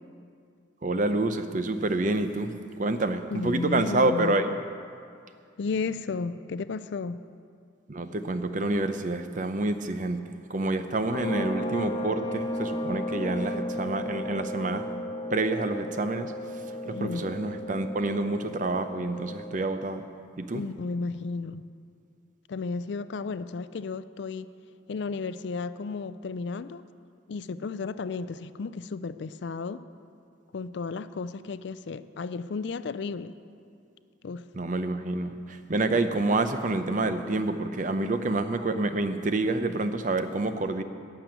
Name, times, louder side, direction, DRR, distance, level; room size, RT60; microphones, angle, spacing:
voice 1, 0.8-4.5 7.9-10.2 10.5-14.8 15.3-16.3 16.9-20.0 20.4-20.6 34.5-40.8, right 2 dB, 40° right, 9 dB, 0.6 m, -28 dB
voice 2, 3.3-4.6 5.6-7.2 16.8-17.3 20.5-21.6 22.5-24.5 24.9-26.9 27.3-29.8 30.5-33.4 34.2-34.5, left 4 dB, 60° left, 14 dB, 0.4 m, -33 dB
sound 1, 11.1-19.6, left 1 dB, 25° left, 0.9 m, -34 dB
11.5 x 6.9 x 9.2 m, 2.3 s
head